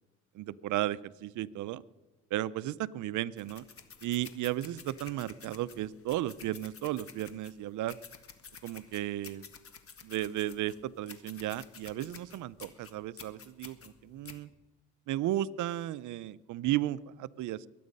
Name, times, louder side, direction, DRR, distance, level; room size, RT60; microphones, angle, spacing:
voice 1, 0.3-1.8 2.3-3.6 4.0-8.0 8.6-9.5 10.0-14.5 15.1-17.7, right 14 dB, 80° right, 17 dB, 0.6 m, -34 dB
sound 1, 3.4-14.4, left 6 dB, 50° left, 1.6 m, -51 dB
22.5 x 9.4 x 5.4 m, 1.1 s
cardioid pair, 90°, 30 cm